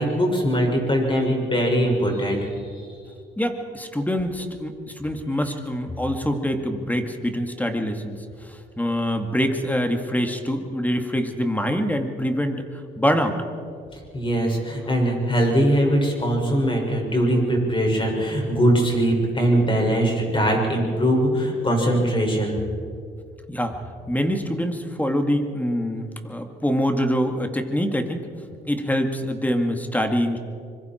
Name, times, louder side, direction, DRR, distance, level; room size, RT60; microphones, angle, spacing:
voice 1, 0.0-2.5 14.1-22.6, equal, 25° left, 1 dB, 6.1 m, -21 dB
voice 2, 3.4-8.2 8.4-13.4 23.5-23.8 24.1-28.3 28.7-30.4, equal, 10° left, 5 dB, 2.2 m, -25 dB
25.0 x 23.0 x 4.6 m, 2.3 s
cardioid pair, 90°, 20 cm